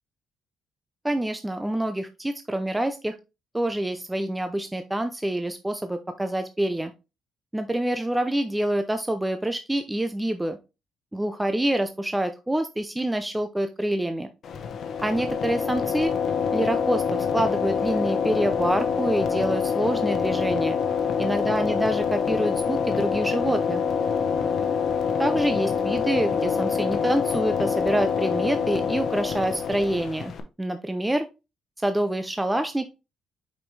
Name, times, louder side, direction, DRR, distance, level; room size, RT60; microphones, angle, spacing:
voice 1, 1.0-3.2 3.5-6.9 7.5-10.6 11.1-14.3 15.0-16.1 16.5-20.8 21.2-23.8 25.2-30.3 30.6-31.3 31.8-32.9, right 1 dB, 10° right, 8 dB, 0.6 m, -26 dB
sound 1, 14.4-30.4, left 6 dB, 60° left, 1.0 m, -26 dB
5.8 x 5.2 x 3.2 m, 0.28 s
cardioid pair, 90°, 0 cm